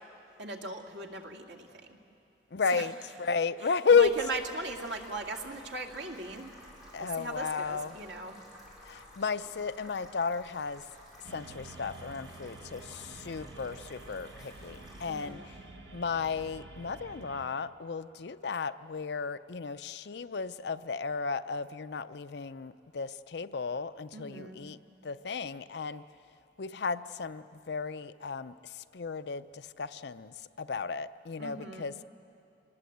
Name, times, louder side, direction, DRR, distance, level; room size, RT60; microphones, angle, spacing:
voice 1, 0.4-2.0 2.7-2.8 3.6-6.5 7.0-8.4 15.1-15.5 24.1-24.7 31.4-31.9, right 2 dB, 85° right, 1 dB, 2.1 m, -39 dB
voice 2, 2.5-4.1 6.9-8.0 8.8-10.8 11.3-15.5 15.9-24.8 25.0-26.0 26.6-32.0, left 5 dB, 60° left, 12 dB, 0.5 m, -33 dB
sound 1, 4.0-15.3, equal, ahead, 5.9 m, -54 dB
sound 2, 11.2-17.4, right 2 dB, 65° right, 1.5 m, -49 dB
25.5 x 20.0 x 8.0 m, 2.7 s
head